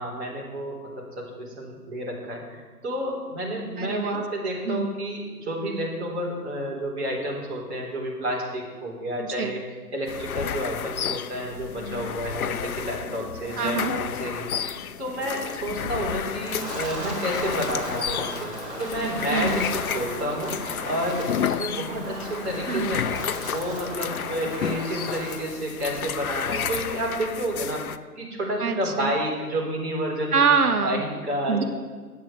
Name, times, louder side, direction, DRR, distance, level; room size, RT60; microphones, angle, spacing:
voice 1, 0.0-14.5 15.0-18.5 18.8-23.2 23.4-27.8 28.2-30.4 30.8-31.6, right 1 dB, 40° right, -4 dB, 3.7 m, -30 dB
voice 2, 3.8-4.2 4.7-4.9 9.4-9.5 13.6-13.9 19.3-19.7 22.7-22.9 28.6-29.1 30.3-31.0 31.5-31.6, right 5 dB, 65° right, 6 dB, 1.5 m, -24 dB
sound 1, 10.1-28.0, left 8 dB, 65° left, 0.6 m, -32 dB
Wind, 16.5-25.4, right 1 dB, 10° right, 1.4 m, -36 dB
9.4 x 7.5 x 6.8 m, 1.5 s
hypercardioid pair, 160°, 48 cm